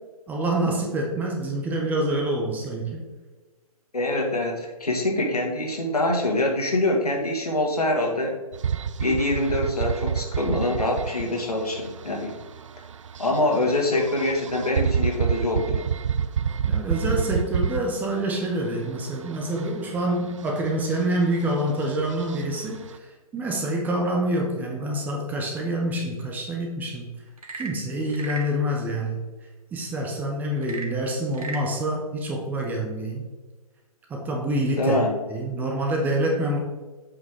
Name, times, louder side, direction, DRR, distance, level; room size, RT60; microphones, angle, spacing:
voice 1, 0.3-3.0 13.5-13.6 16.7-23.0 23.3-27.1 27.6-29.2 29.7-33.2 34.1-35.0 35.3-36.6, right 1 dB, 10° right, 1 dB, 0.7 m, -26 dB
voice 2, 3.9-8.4 9.0-12.3 13.2-15.9 34.8-35.2, left 1 dB, 75° left, 0 dB, 2.0 m, -24 dB
sound 1, 8.5-23.0, right 7 dB, 55° right, 0.5 m, -29 dB
Frog / Percussion / Wood, 27.3-28.6 30.6-31.7, right 3 dB, 70° right, 1.4 m, -36 dB
7.3 x 5.7 x 3.7 m, 1.3 s
figure-of-eight pair, 135°, 19 cm